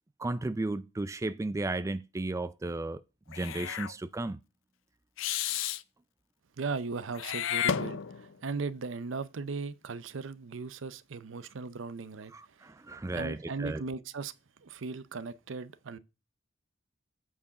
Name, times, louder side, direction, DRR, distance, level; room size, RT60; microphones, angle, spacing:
voice 1, 0.2-3.0 3.3-4.4 12.3-13.8, right 2 dB, 15° right, 0.3 m, -34 dB
Meow / Hiss, 3.3-3.9 5.2-5.8 7.1-8.4, left 9 dB, 70° left, 0.5 m, -32 dB
voice 2, 6.6-12.6 13.1-14.3 14.6-16.0, right 4 dB, 70° right, 0.6 m, -37 dB
8.4 x 4.8 x 5.7 m
head